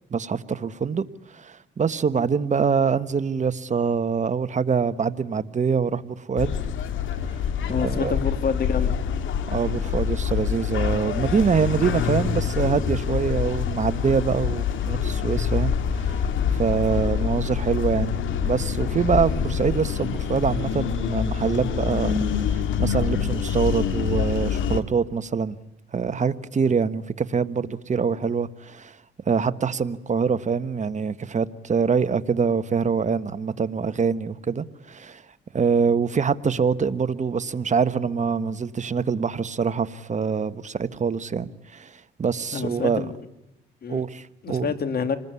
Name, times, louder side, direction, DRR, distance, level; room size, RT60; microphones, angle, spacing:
voice 1, 0.1-1.0 1.3-6.6 7.8-8.2 9.5-16.2 16.5-22.1 22.5-25.6 25.9-29.0 29.2-35.2 35.5-43.0 43.9-44.7, right 6 dB, 35° right, 1.4 m, -24 dB
sound 1, 6.4-24.8, left 7 dB, 75° left, 2.1 m, -26 dB
voice 2, 7.6-9.0 42.5-43.2 43.8-44.0 44.4-45.2, left 5 dB, 50° left, 2.7 m, -27 dB
28.0 x 20.0 x 9.7 m
cardioid pair, 90°, 20 cm